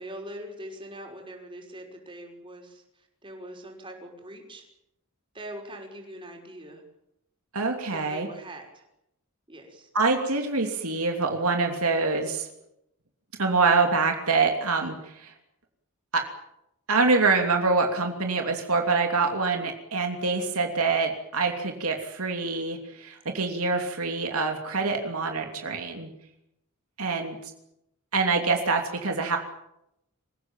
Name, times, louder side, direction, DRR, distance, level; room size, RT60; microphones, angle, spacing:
voice 1, 0.0-4.7 5.3-6.8 7.9-8.9 9.5-9.9, right 1 dB, 25° right, 1 dB, 5.8 m, -42 dB
voice 2, 7.5-8.3 9.9-12.5 13.4-15.3 16.1-16.2 16.9-26.1 27.0-27.4 28.1-29.4, right 4 dB, 75° right, 3 dB, 2.9 m, -25 dB
26.0 x 16.5 x 9.0 m, 0.82 s
head